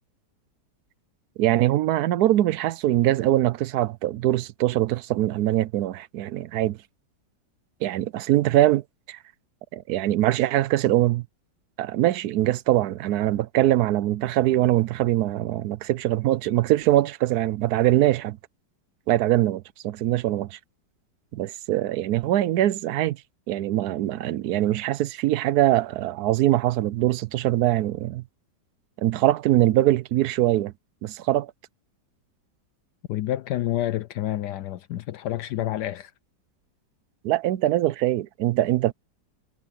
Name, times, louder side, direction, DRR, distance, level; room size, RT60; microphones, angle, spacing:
voice 1, 1.4-6.8 7.8-9.2 9.7-11.2 11.8-18.4 19.1-20.6 21.3-23.2 23.5-28.2 29.0-30.7 31.0-31.5 37.2-38.9, right 14 dB, 70° right, 1.0 m, -22 dB
voice 2, 33.1-36.1, left 13 dB, 75° left, 1.2 m, -28 dB
omnidirectional pair, 1.9 m